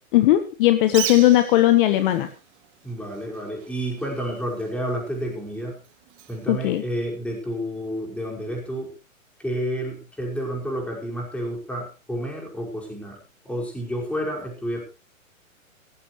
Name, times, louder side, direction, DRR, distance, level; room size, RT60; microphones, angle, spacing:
voice 1, 0.1-2.3 6.5-6.8, left 14 dB, 40° left, 9 dB, 1.4 m, -18 dB
Bird, 0.8-7.5, right 12 dB, 30° right, 2.5 m, -39 dB
voice 2, 2.8-5.8 6.3-8.9 9.4-13.2 13.5-14.8, equal, 5° left, -1 dB, 5.3 m, -30 dB
17.5 x 14.5 x 3.2 m, 0.31 s
hypercardioid pair, 130°, 41 cm